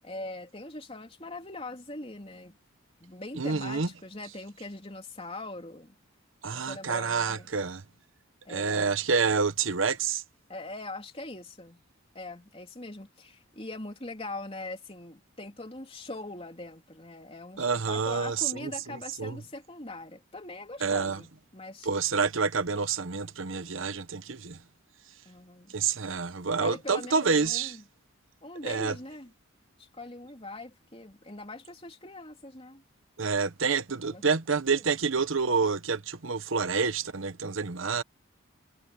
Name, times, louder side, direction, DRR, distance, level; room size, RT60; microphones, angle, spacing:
voice 1, 0.0-2.6 3.0-5.9 6.5-7.5 8.5-9.0 10.5-11.8 12.1-21.3 21.5-21.9 25.3-25.8 26.6-27.8 28.4-29.3 29.8-32.8 34.0-34.4 34.7-34.8, left 2 dB, 25° left, 3.4 m, -42 dB
voice 2, 3.4-3.9 6.4-7.8 8.5-10.2 17.6-18.7 19.2-19.4 20.8-21.2 21.8-24.6 25.7-27.8 28.6-28.9 33.2-38.0, right 5 dB, 70° right, 1.0 m, -28 dB
head